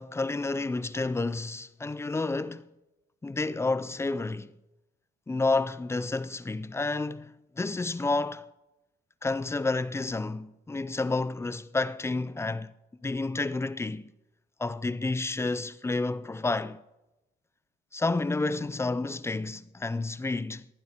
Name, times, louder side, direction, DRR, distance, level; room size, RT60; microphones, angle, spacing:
voice 1, 0.0-2.7 3.2-4.5 5.3-8.5 9.2-12.7 13.0-14.1 14.6-16.8 17.9-20.7, left 3 dB, 15° left, 0.4 m, -30 dB
19.0 x 11.5 x 2.9 m
cardioid pair, 90°, 20 cm